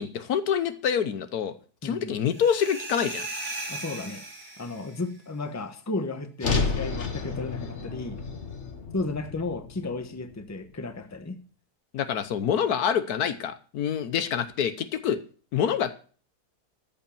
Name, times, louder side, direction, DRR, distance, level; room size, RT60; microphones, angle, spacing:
voice 1, 0.0-1.5 1.8-3.3 11.9-15.2 15.5-15.9, left 8 dB, 75° left, 12 dB, 1.4 m, -26 dB
voice 2, 1.8-2.1 3.7-4.2 4.6-8.2 8.9-11.4, left 3 dB, 10° left, 8 dB, 0.9 m, -34 dB
sound 1, 2.3-5.0, right 2 dB, 75° right, 7.5 m, -37 dB
sound 2, 6.4-10.7, left 4 dB, 45° left, 1.8 m, -31 dB
13.5 x 5.4 x 6.9 m, 0.41 s
omnidirectional pair, 1.7 m